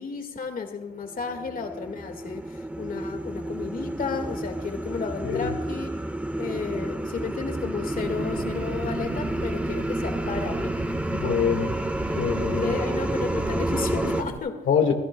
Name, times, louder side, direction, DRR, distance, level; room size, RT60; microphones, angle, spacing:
voice 1, 0.0-5.9 6.4-10.8 12.6-14.6, left 5 dB, 45° left, 5 dB, 2.0 m, -33 dB
sound 1, 1.1-14.2, right 1 dB, 5° right, 1.5 m, -30 dB
Engine, 7.9-14.4, right 5 dB, 50° right, 1.2 m, -38 dB
voice 2, 11.1-11.7 12.1-12.8 14.7-14.9, left 7 dB, 75° left, 3 dB, 1.9 m, -24 dB
28.5 x 11.5 x 2.3 m, 1.2 s
cardioid pair, 90°, 20 cm